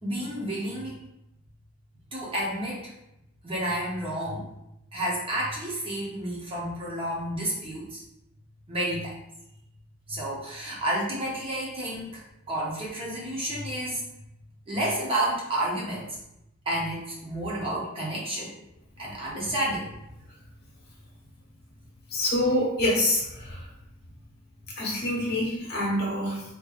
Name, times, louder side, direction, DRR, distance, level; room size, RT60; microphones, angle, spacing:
voice 1, 0.0-1.0 2.1-2.8 3.4-4.5 4.9-8.0 8.7-9.1 10.1-14.0 14.7-16.2 16.7-18.5 19.0-19.9, right 1 dB, 25° right, -5 dB, 0.7 m, -30 dB
voice 2, 22.1-23.6 24.8-26.4, left 1 dB, 50° left, -4 dB, 1.1 m, -26 dB
3.6 x 3.0 x 2.4 m, 0.85 s
head